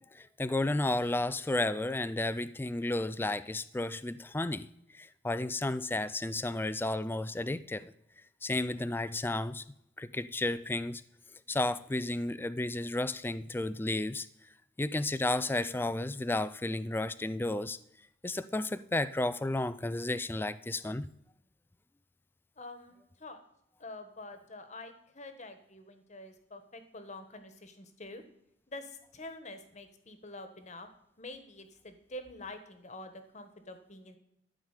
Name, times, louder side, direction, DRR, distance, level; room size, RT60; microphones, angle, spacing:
voice 1, 0.1-4.7 4.9-7.9 8.4-9.6 10.0-11.0 11.5-14.3 14.8-17.8 18.2-21.1, left 2 dB, 10° left, 15 dB, 0.3 m, -32 dB
voice 2, 22.6-23.4 23.8-28.2 28.7-30.9 31.2-34.2, left 2 dB, 35° left, 8 dB, 1.3 m, -47 dB
13.0 x 5.1 x 8.2 m, 0.78 s
head